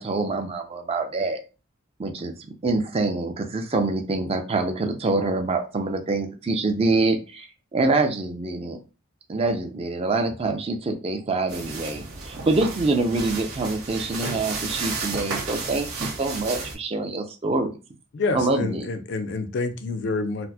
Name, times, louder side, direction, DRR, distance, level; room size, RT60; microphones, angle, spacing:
voice 1, 0.0-1.4 2.0-2.3 2.6-7.5 7.7-8.8 9.3-17.7 18.3-18.9, right 3 dB, 25° right, 5 dB, 0.4 m, -25 dB
sound 1, 11.5-16.7, right 4 dB, 85° right, 1.1 m, -33 dB
voice 2, 18.1-20.5, left 3 dB, 50° left, 8 dB, 0.4 m, -28 dB
4.1 x 2.0 x 2.7 m, 0.33 s
head